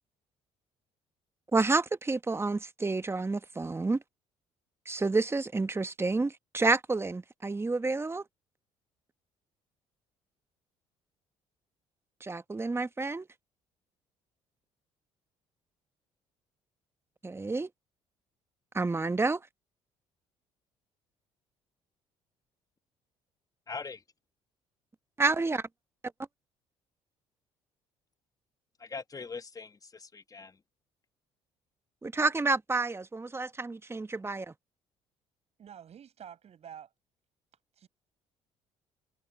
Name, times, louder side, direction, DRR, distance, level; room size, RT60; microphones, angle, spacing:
voice 1, 1.5-4.0 4.9-8.2 12.2-13.3 17.2-17.7 18.7-19.4 25.2-25.6 32.0-34.5, right 3 dB, 20° right, 1.1 m, -29 dB
voice 2, 23.7-24.0 28.8-30.6, left 4 dB, 25° left, 1.3 m, -41 dB
voice 3, 35.6-36.9 37.8-37.9, right 9 dB, 55° right, 7.4 m, -48 dB
hypercardioid pair, 60°, 13 cm